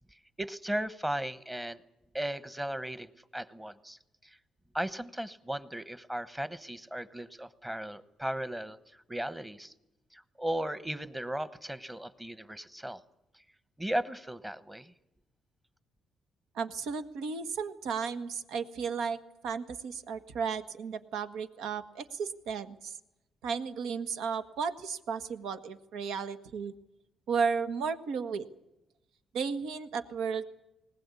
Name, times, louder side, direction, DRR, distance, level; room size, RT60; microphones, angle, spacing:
voice 1, 0.4-1.8 2.1-4.4 4.7-8.8 9.1-9.7 10.1-13.0 13.8-14.9, right 1 dB, 10° right, 14 dB, 1.0 m, -36 dB
voice 2, 16.5-19.2 19.4-23.0 23.4-26.7 27.3-28.4 29.3-30.4, right 6 dB, 85° right, 10 dB, 1.5 m, -34 dB
20.5 x 19.5 x 8.3 m, 0.94 s
cardioid pair, 130°, 0 cm